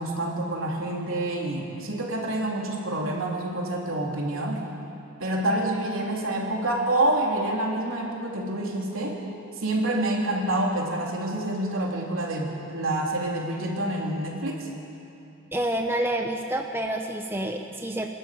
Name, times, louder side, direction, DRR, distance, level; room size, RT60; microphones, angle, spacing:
voice 1, 0.0-4.6 5.2-9.2 9.6-14.7, right 1 dB, 75° right, -1 dB, 3.4 m, -27 dB
voice 2, 15.5-18.1, right 1 dB, 10° right, 3 dB, 0.9 m, -28 dB
24.0 x 12.5 x 9.4 m, 2.7 s
head